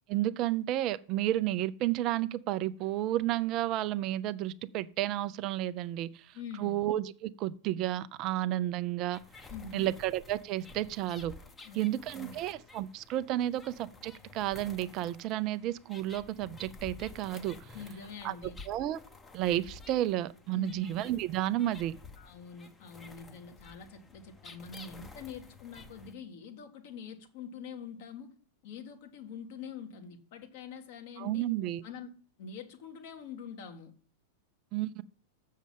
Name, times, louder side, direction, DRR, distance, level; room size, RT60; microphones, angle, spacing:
voice 1, 0.1-9.2 9.7-11.3 11.7-17.7 18.2-18.4 18.7-19.0 19.3-22.0 31.2-31.8 34.7-35.0, right 14 dB, 40° right, 0.5 m, -32 dB
voice 2, 6.3-6.8 9.5-9.9 11.6-11.9 12.1-12.4 17.7-18.6 20.5-20.9 22.2-28.3 28.6-31.5 31.8-32.1 32.4-33.9, left 6 dB, 55° left, 1.7 m, -45 dB
sound 1, 9.1-26.1, left 3 dB, 15° left, 1.0 m, -52 dB
7.2 x 6.5 x 7.4 m
figure-of-eight pair, 95°, 0 cm